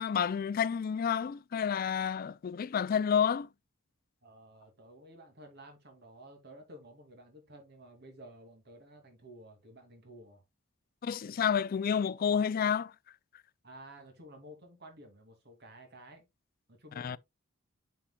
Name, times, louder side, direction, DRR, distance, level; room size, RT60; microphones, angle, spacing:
voice 1, 0.0-3.5 11.0-12.9 17.0-17.2, left 7 dB, 45° left, 0.3 m, -30 dB
voice 2, 4.2-10.4 13.6-16.3 16.7-17.2, right 1 dB, 55° right, 2.6 m, -53 dB
10.0 x 5.6 x 2.3 m
head